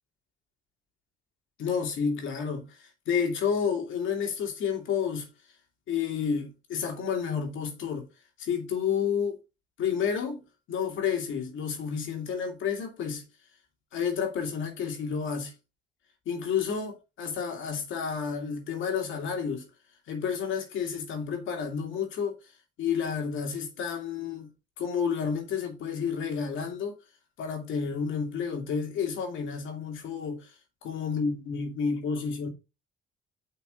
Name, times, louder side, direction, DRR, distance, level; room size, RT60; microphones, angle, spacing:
voice 1, 1.6-5.3 5.9-8.1 8.4-9.4 9.8-10.4 10.7-13.2 13.9-15.5 16.3-19.7 20.1-22.3 22.8-24.5 24.8-27.0 27.4-30.5 30.8-32.5, left 6 dB, 80° left, 2.6 m, -30 dB
9.0 x 5.8 x 2.5 m
cardioid pair, 90°, 20 cm